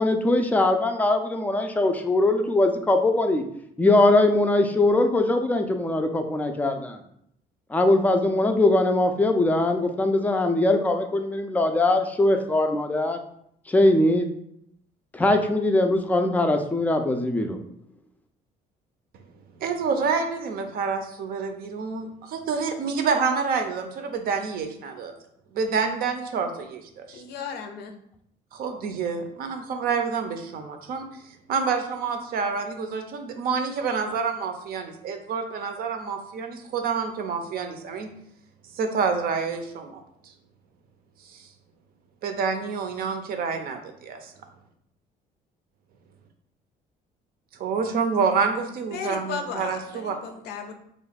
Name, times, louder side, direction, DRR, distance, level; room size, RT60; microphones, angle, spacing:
voice 1, 0.0-3.4 3.8-7.0 7.7-13.2 13.7-14.3 15.1-17.6, left 2 dB, 10° left, 5 dB, 0.3 m, -21 dB
voice 2, 19.6-25.1 25.5-27.2 28.5-31.1 31.5-38.1 38.7-40.0 41.3-41.5 42.2-44.3 47.6-50.2, right 5 dB, 60° right, 6 dB, 0.5 m, -28 dB
voice 3, 27.1-27.9 48.9-50.7, left 6 dB, 75° left, 6 dB, 0.5 m, -35 dB
3.0 x 2.2 x 4.0 m, 0.72 s
cardioid pair, 110°, 17 cm